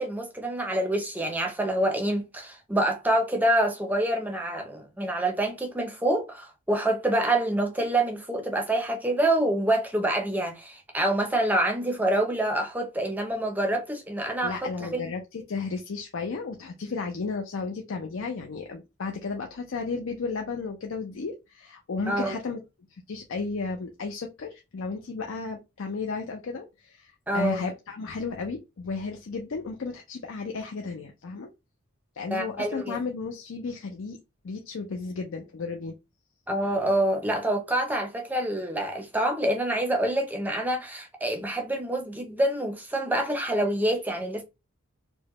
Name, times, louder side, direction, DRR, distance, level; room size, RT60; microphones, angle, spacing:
voice 1, 0.0-15.1 22.1-22.4 27.3-27.7 32.3-33.0 36.5-44.4, right 1 dB, 10° right, 0.6 m, -26 dB
voice 2, 14.4-22.6 22.9-31.5 32.1-34.2 34.4-36.0, left 4 dB, 60° left, 0.5 m, -34 dB
4.5 x 2.1 x 3.0 m
head